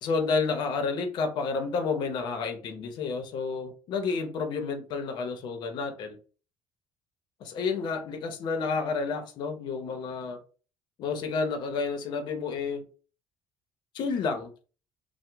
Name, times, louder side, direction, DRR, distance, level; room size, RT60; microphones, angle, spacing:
voice 1, 0.0-6.2 7.4-10.4 11.0-12.8 13.9-14.5, left 4 dB, 60° left, 0.6 m, -30 dB
2.9 x 2.0 x 3.3 m
cardioid pair, 130°, 8 cm